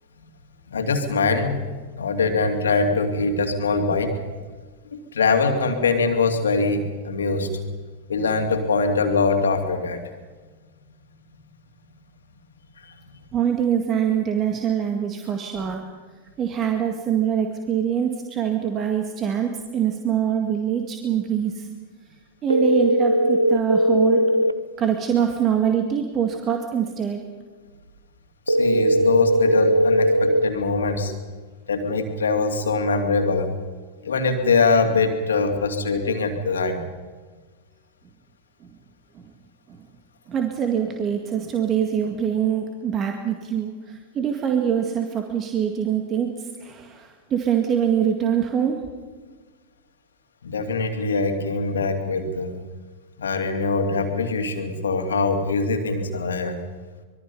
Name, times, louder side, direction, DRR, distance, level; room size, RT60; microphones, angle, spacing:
voice 1, 0.7-1.6 1.9-4.1 4.9-7.5 8.1-10.0 12.8-12.9 15.6-15.7 28.5-31.1 31.7-33.5 34.0-36.8 50.4-52.5 53.2-56.6, left 4 dB, 70° left, 5 dB, 2.7 m, -23 dB
voice 2, 13.3-15.8 16.4-21.7 22.4-24.3 24.8-27.2 40.3-46.3 46.6-48.8, right 8 dB, 30° right, 4 dB, 2.0 m, -24 dB
sound 1, 22.5-24.5 28.5-30.5, equal, 85° right, 0.7 m, -19 dB
25.5 x 22.0 x 5.5 m, 1.4 s
figure-of-eight pair, 90°, 0 cm